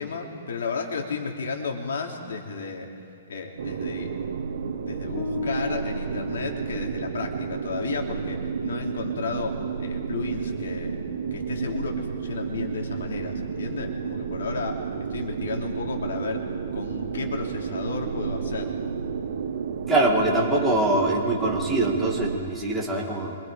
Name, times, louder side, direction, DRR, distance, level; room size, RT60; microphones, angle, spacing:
voice 1, 0.0-2.9 3.3-4.2 4.8-11.0 11.3-14.8 15.1-16.4 16.7-18.9, left 4 dB, 80° left, 1 dB, 3.3 m, -33 dB
sound 1, 3.6-22.4, right 6 dB, 65° right, 1.5 m, -31 dB
Piano, 5.2-11.9, left 2 dB, 30° left, 4.2 m, -39 dB
voice 2, 19.9-23.4, right 2 dB, 5° right, -4 dB, 2.3 m, -23 dB
27.0 x 25.0 x 5.2 m, 2.4 s
hypercardioid pair, 165°, 0 cm